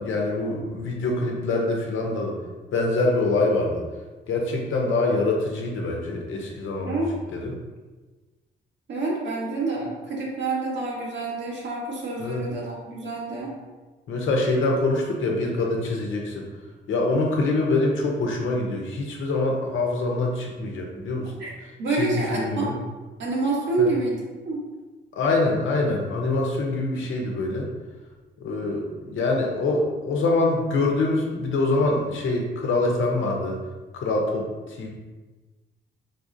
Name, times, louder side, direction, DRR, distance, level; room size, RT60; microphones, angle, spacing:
voice 1, 0.0-2.4 2.7-3.8 4.3-7.0 7.3-7.6 12.2-12.4 14.1-16.5 16.9-21.3 21.9-22.7 23.8-23.9 25.1-27.7 28.4-33.6 33.9-34.9, left 2 dB, 85° left, 0 dB, 0.8 m, -25 dB
voice 2, 6.8-7.2 8.9-13.5 21.4-21.5 21.8-22.6 23.2-24.6, right 3 dB, 70° right, -4 dB, 1.3 m, -27 dB
4.0 x 3.8 x 2.7 m, 1.3 s
cardioid pair, 85°, 20 cm